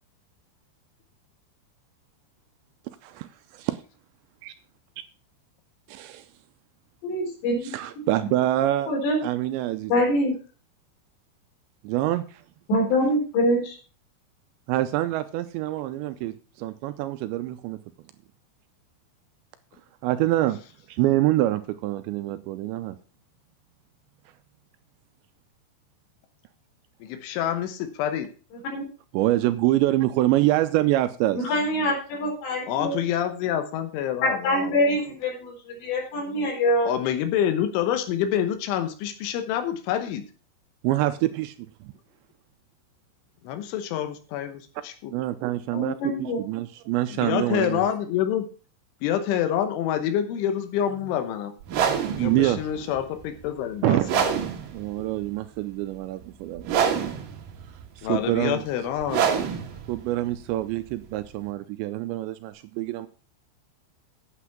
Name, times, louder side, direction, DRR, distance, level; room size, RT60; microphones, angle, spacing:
voice 1, 5.9-6.2 7.6-8.9 9.2-9.9 11.8-12.2 14.7-17.8 20.0-20.6 20.9-23.0 29.1-31.4 40.8-41.5 45.1-47.9 51.8-52.9 53.8-54.1 54.7-56.8 58.0-58.6 59.9-63.1, right 15 dB, 80° right, 11 dB, 2.7 m, -25 dB
voice 2, 7.0-7.6 8.9-9.2 9.9-10.3 12.7-13.8 28.7-28.8 31.3-33.0 34.4-35.5 35.8-36.9 45.7-46.4, equal, 65° left, -2 dB, 6.2 m, -24 dB
voice 3, 27.0-28.3 32.7-34.7 36.9-40.2 43.5-45.1 47.1-48.5 49.0-51.5 52.1-54.2 58.0-59.3, left 10 dB, 85° left, 8 dB, 3.5 m, -27 dB
sound 1, 51.6-61.5, right 7 dB, 60° right, 2.5 m, -28 dB
9.1 x 8.1 x 5.8 m, 0.38 s
omnidirectional pair, 5.4 m